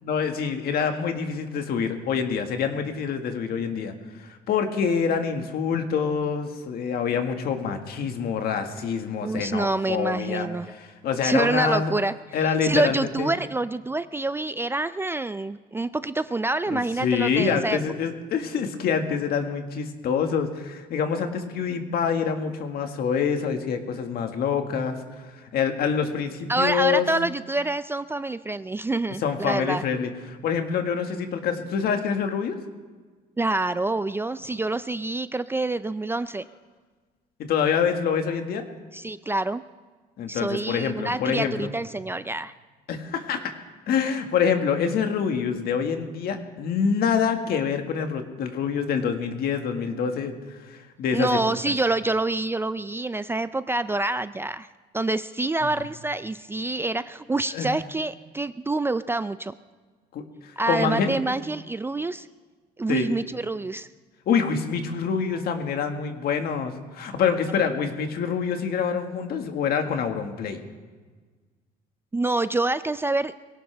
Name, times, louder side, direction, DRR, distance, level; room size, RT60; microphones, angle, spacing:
voice 1, 0.0-3.9 4.2-12.0 12.3-13.3 16.7-25.0 25.5-27.1 29.2-32.6 37.4-38.6 40.2-41.7 42.9-43.5 43.9-51.6 57.5-57.7 60.1-61.1 62.9-63.1 64.3-70.6, left 6 dB, 65° left, 5 dB, 1.8 m, -26 dB
voice 2, 9.2-10.7 11.2-12.1 12.6-17.8 26.5-29.8 33.4-36.5 38.9-39.6 40.3-42.5 51.1-54.7 54.9-59.5 60.6-62.3 62.8-63.9 72.1-73.4, right 2 dB, 15° right, 13 dB, 0.4 m, -26 dB
22.0 x 17.5 x 3.4 m, 1.4 s
cardioid pair, 110°, 17 cm